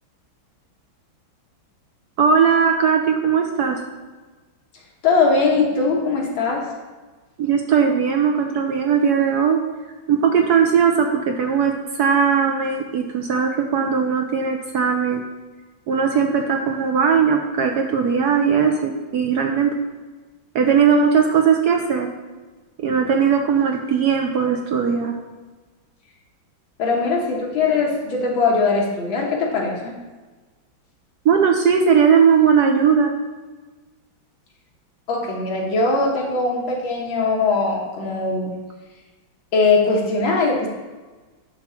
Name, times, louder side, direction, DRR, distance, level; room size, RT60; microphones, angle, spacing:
voice 1, 2.2-3.8 7.4-9.6 10.1-15.2 15.9-19.8 20.5-22.1 22.8-25.1 31.2-33.1, right 6 dB, 65° right, 3 dB, 1.0 m, -18 dB
voice 2, 5.0-6.7 26.8-29.9 35.1-38.5 39.5-40.7, left 4 dB, 75° left, -1 dB, 2.0 m, -20 dB
9.7 x 3.6 x 5.7 m, 1.3 s
omnidirectional pair, 2.2 m